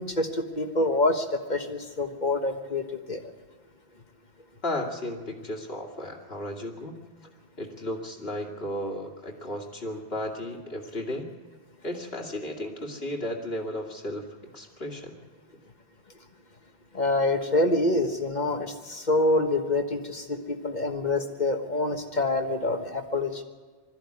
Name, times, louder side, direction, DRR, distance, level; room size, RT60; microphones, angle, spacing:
voice 1, 0.0-3.2 16.9-23.4, left 2 dB, 45° left, 5 dB, 1.5 m, -26 dB
voice 2, 4.6-7.0 7.6-11.3 11.8-14.3 14.5-15.2, left 1 dB, 65° left, 1 dB, 2.6 m, -34 dB
21.0 x 14.0 x 9.7 m, 1.4 s
omnidirectional pair, 1.1 m